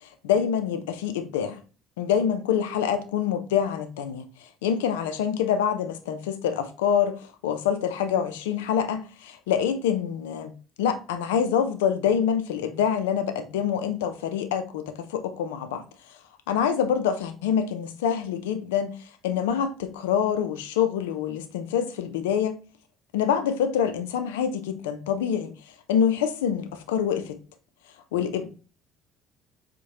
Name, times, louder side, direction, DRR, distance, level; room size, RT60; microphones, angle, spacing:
voice 1, 0.0-1.6 2.0-15.8 16.5-22.6 23.1-25.5 25.9-27.4 28.1-28.5, left 8 dB, 85° left, 0.4 m, -26 dB
4.6 x 2.1 x 2.7 m
hypercardioid pair, 65°, 0 cm